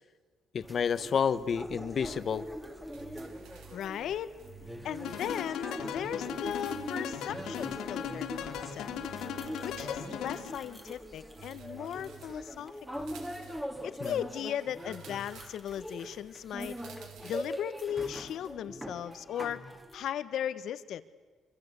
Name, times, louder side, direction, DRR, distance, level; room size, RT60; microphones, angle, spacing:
voice 1, 0.5-2.5 14.0-14.1, left 7 dB, 40° left, 13 dB, 1.1 m, -30 dB
sound 1, 0.6-20.1, equal, 5° right, 2.1 m, -42 dB
sound 2, 2.9-3.9 4.4-5.4 5.6-5.7 6.6-7.9 9.0-10.3 11.4-12.5 12.9-13.7 14.8-15.8 16.8-17.6, right 8 dB, 80° right, 4.3 m, -52 dB
voice 2, 3.7-4.3 4.8-8.9 9.6-13.1 13.8-16.8 17.2-19.6 19.9-21.0, left 10 dB, 65° left, 14 dB, 1.3 m, -37 dB
sound 3, 5.0-10.7, left 8 dB, 85° left, 3.5 m, -38 dB
26.0 x 25.5 x 8.3 m, 1.4 s
cardioid pair, 160°, 0 cm